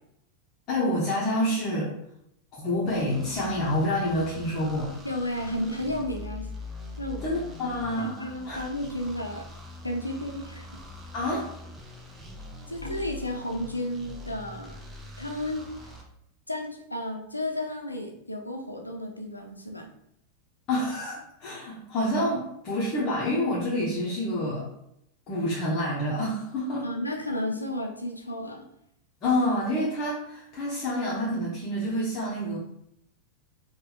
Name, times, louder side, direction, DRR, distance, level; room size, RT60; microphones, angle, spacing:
voice 1, 0.7-1.9 2.5-4.9 7.2-8.6 11.1-11.5 20.7-24.7 25.3-26.8 29.2-32.6, left 1 dB, 35° left, -6 dB, 0.8 m, -28 dB
sound 1, 2.9-16.0, left 1 dB, 15° right, 0.6 m, -43 dB
voice 2, 5.0-6.5 7.0-7.2 7.9-9.5 9.8-10.7 12.6-14.8 15.2-15.9 16.5-19.9 26.8-28.6, left 1 dB, 85° left, 2 dB, 0.5 m, -33 dB
4.3 x 2.2 x 2.3 m, 0.76 s
figure-of-eight pair, 90°, 0 cm